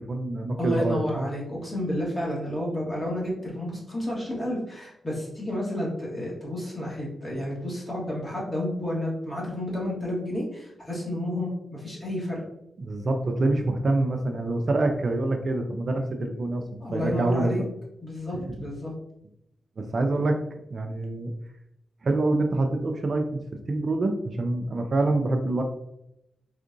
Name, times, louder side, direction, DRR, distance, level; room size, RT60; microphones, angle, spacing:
voice 1, 0.0-1.3 12.8-16.6 16.9-17.6 18.3-18.5 19.8-20.4 20.7-21.3 22.0-23.4 23.7-25.6, right 2 dB, 50° right, 4 dB, 0.4 m, -26 dB
voice 2, 0.6-12.4 16.8-17.6 18.0-18.9, equal, 25° left, -4 dB, 1.4 m, -30 dB
3.6 x 2.4 x 2.6 m, 0.81 s
cardioid pair, 75°, 0 cm